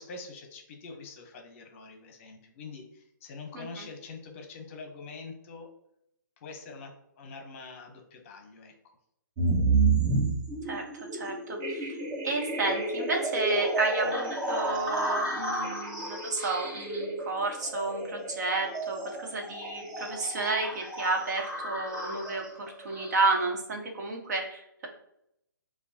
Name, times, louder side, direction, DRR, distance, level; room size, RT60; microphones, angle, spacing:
voice 1, 0.0-5.7 6.4-9.0, left 4 dB, 40° left, 3 dB, 0.8 m, -45 dB
voice 2, 3.5-3.9 10.7-12.0 12.2-24.9, right 3 dB, 55° right, 1 dB, 1.1 m, -31 dB
sound 1, 9.4-23.4, right 3 dB, 30° right, 1.4 m, -31 dB
6.7 x 2.3 x 2.8 m, 0.76 s
hypercardioid pair, 145°, 11 cm